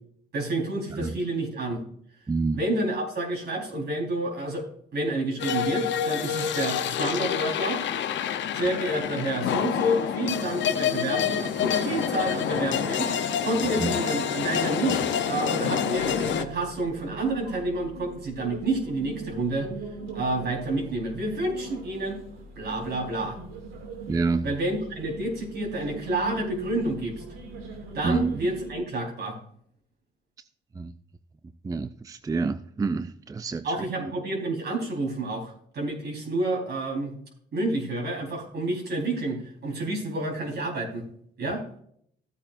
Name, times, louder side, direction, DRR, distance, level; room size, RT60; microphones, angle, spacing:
voice 1, 0.3-1.8 2.5-7.8 8.5-19.7 20.1-22.2 22.6-23.4 24.4-27.2 27.9-29.4 33.6-37.1 37.5-41.0 41.4-41.6, right 2 dB, 55° right, 1 dB, 4.1 m, -29 dB
voice 2, 2.3-2.6 13.8-13.9 14.9-15.0 24.1-24.5 28.0-28.3 30.8-30.9 31.6-33.6, right 4 dB, 20° right, 11 dB, 0.4 m, -27 dB
sound 1, 5.4-16.5, left 8 dB, 70° left, 0.8 m, -27 dB
sound 2, 15.9-28.8, right 3 dB, 90° right, 2.4 m, -40 dB
14.5 x 8.6 x 2.6 m, 0.66 s
cardioid pair, 90°, 20 cm